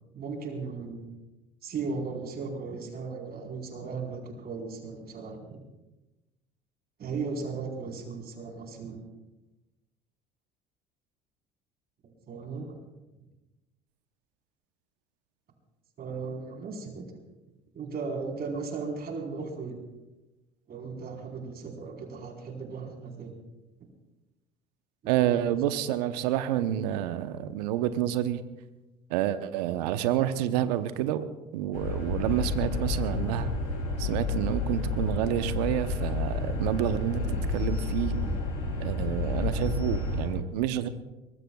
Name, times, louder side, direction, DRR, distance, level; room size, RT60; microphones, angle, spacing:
voice 1, 0.1-1.1 1.6-5.6 7.0-9.0 12.3-12.8 16.0-17.1 17.7-19.8 20.7-23.3 25.0-25.4, right 4 dB, 50° right, 2 dB, 4.4 m, -36 dB
voice 2, 25.1-28.4 29.1-31.2 31.5-33.5 34.0-38.1 38.8-40.9, right 11 dB, 75° right, 11 dB, 0.9 m, -29 dB
sound 1, 31.7-40.3, left 3 dB, 80° left, 5.4 m, -30 dB
23.5 x 21.0 x 2.4 m, 1.1 s
hypercardioid pair, 65°, 21 cm